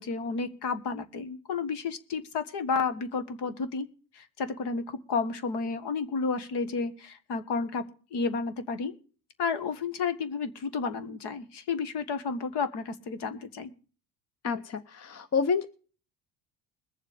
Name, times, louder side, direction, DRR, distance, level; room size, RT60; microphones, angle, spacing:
voice 1, 0.0-3.9 4.1-8.9 9.4-13.7, left 4 dB, 55° left, 11 dB, 1.7 m, -31 dB
voice 2, 14.4-15.6, left 5 dB, 30° left, 13 dB, 0.9 m, -28 dB
21.0 x 7.3 x 5.2 m, 0.40 s
hypercardioid pair, 65°, 50 cm